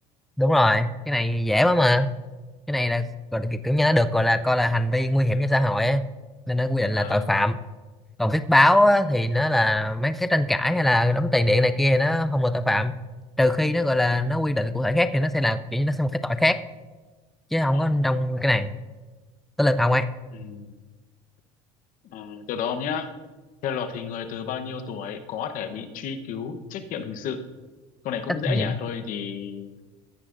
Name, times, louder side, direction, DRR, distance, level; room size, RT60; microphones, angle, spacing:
voice 1, 0.4-2.1 2.7-6.1 6.5-7.6 8.2-12.9 13.4-16.6 17.5-18.7 19.6-20.1 28.5-28.7, left 1 dB, ahead, 11 dB, 0.4 m, -21 dB
voice 2, 7.0-7.3 14.0-14.2 17.7-18.0 20.3-20.7 22.1-23.1 23.6-27.4 28.0-29.7, left 7 dB, 60° left, 8 dB, 1.0 m, -32 dB
15.0 x 9.8 x 2.5 m, 1.3 s
supercardioid pair, 105°, 16 cm